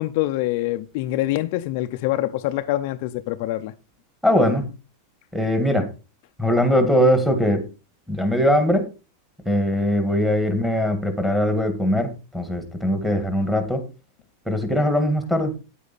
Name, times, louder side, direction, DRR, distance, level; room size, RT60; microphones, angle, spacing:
voice 1, 0.0-3.7, left 15 dB, 50° left, 0.6 m, -25 dB
voice 2, 4.2-4.7 5.3-5.9 6.4-7.7 8.1-8.9 9.5-13.8 14.5-15.5, equal, 5° right, 1.8 m, -21 dB
9.7 x 8.2 x 4.2 m
supercardioid pair, 165°, 0 cm